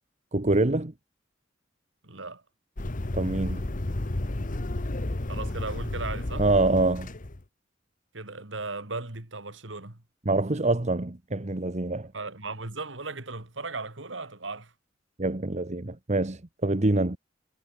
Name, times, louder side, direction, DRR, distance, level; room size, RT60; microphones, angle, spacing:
voice 1, 0.3-0.9 3.1-3.7 6.4-7.1 10.3-12.1 15.2-17.2, right 2 dB, 40° right, 1.2 m, -25 dB
voice 2, 2.0-2.4 5.3-6.5 8.1-10.0 12.1-14.7, right 3 dB, 75° right, 2.8 m, -36 dB
sound 1, 2.8-7.4, left 1 dB, 45° left, 1.2 m, -32 dB
head